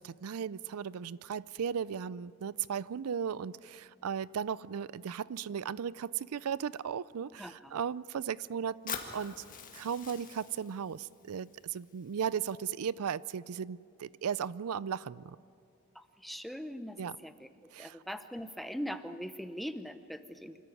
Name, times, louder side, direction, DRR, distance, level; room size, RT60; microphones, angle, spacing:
voice 1, 0.0-9.4 9.7-15.4 17.0-17.2 17.7-18.0, right 7 dB, 85° right, 20 dB, 0.4 m, -36 dB
voice 2, 7.4-7.7 15.9-17.0 17.2-17.5 17.8-20.6, equal, ahead, 10 dB, 0.7 m, -41 dB
Fire, 8.9-12.9, left 6 dB, 35° left, 1.9 m, -45 dB
26.0 x 14.0 x 9.9 m, 2.4 s
head